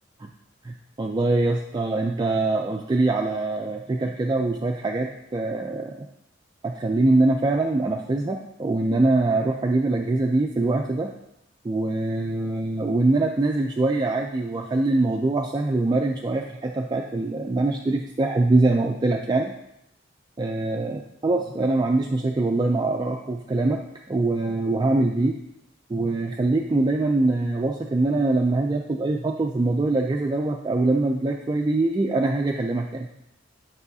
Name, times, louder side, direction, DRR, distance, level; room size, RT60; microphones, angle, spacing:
voice 1, 0.6-6.0 6.6-11.1 11.6-19.5 20.4-23.8 24.1-25.4 25.9-33.1, right 2 dB, 20° right, 2 dB, 0.3 m, -23 dB
7.2 x 5.5 x 2.7 m, 0.82 s
head